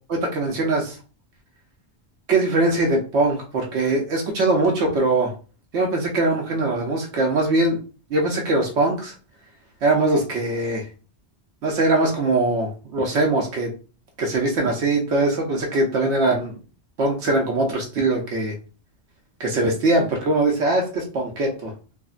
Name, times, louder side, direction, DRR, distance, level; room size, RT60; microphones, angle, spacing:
voice 1, 0.1-1.0 2.3-5.3 5.7-7.8 8.1-9.1 9.8-10.8 11.6-13.7 14.2-16.5 17.0-18.5 19.4-21.7, right 2 dB, 80° right, 0 dB, 1.0 m, -21 dB
3.4 x 2.1 x 2.4 m, 0.35 s
omnidirectional pair, 1.1 m